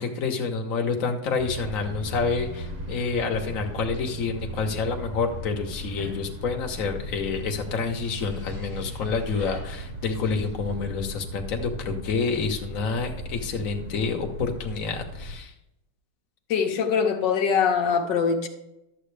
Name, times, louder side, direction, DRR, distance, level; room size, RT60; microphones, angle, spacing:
voice 1, 0.0-15.5, left 5 dB, 50° left, 1.5 m, -28 dB
sound 1, 1.4-15.4, right 1 dB, 35° right, 0.6 m, -37 dB
sound 2, 5.7-11.0, left 1 dB, 60° right, 3.5 m, -43 dB
voice 2, 16.5-18.5, left 6 dB, 80° left, 1.6 m, -23 dB
12.0 x 7.8 x 3.3 m
omnidirectional pair, 1.9 m